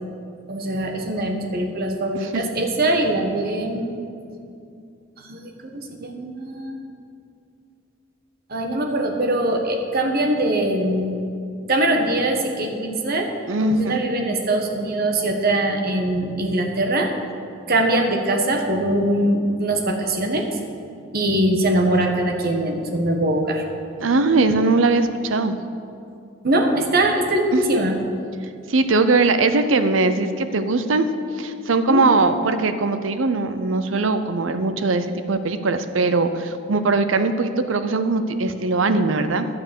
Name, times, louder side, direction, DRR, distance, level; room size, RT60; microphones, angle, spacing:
voice 1, 0.5-4.0 5.2-6.8 8.5-11.1 11.7-13.3 13.6-17.1 17.7-20.5 21.1-23.6 26.4-27.9 31.9-32.0, right 1 dB, 50° right, 3 dB, 1.2 m, -22 dB
voice 2, 13.5-14.0 24.0-25.6 27.5-27.6 28.7-31.1 31.4-39.5, right 3 dB, 80° right, 10 dB, 0.7 m, -20 dB
11.0 x 7.0 x 6.9 m, 2.5 s
head